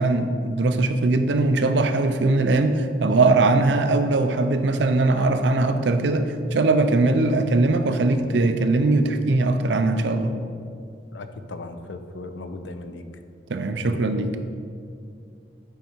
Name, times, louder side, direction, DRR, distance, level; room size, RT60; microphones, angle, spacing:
voice 1, 0.0-10.3 13.5-14.3, right 2 dB, 80° right, 8 dB, 0.5 m, -20 dB
voice 2, 11.1-13.0, left 2 dB, 85° left, 8 dB, 0.5 m, -37 dB
8.0 x 4.7 x 4.5 m, 2.4 s
head